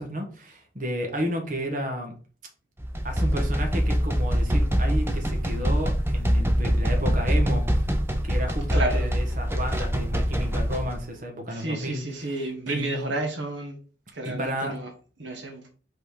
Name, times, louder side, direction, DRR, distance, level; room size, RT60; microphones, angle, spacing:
voice 1, 0.0-2.1 3.0-7.6 8.2-13.1 14.2-14.7, equal, 45° right, 1.4 m, -32 dB
sound 1, 2.8-11.0, equal, 15° right, 0.7 m, -24 dB
voice 2, 8.7-9.2 11.5-13.8 14.1-14.9 15.2-15.7, right 2 dB, 75° right, 1.3 m, -31 dB
5.3 x 4.2 x 5.0 m
head